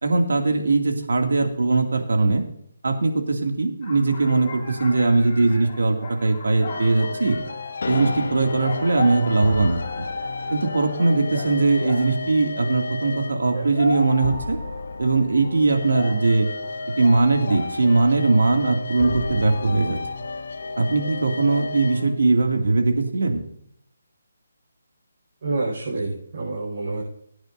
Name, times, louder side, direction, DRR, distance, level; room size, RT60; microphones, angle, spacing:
voice 1, 0.0-2.4 2.8-7.4 7.9-10.1 10.5-14.6 15.0-16.5 17.0-20.0 20.8-23.4, right 3 dB, 85° right, 3 dB, 2.4 m, -20 dB
sound 1, 3.8-12.2 13.3-18.1 18.4-18.8, left 2 dB, 25° left, 4.4 m, -37 dB
sound 2, 6.7-22.1, left 3 dB, 65° left, 0.8 m, -32 dB
voice 2, 25.4-27.0, right 2 dB, 50° right, -6 dB, 5.2 m, -28 dB
21.5 x 9.6 x 2.7 m, 0.72 s
hypercardioid pair, 170°, 0 cm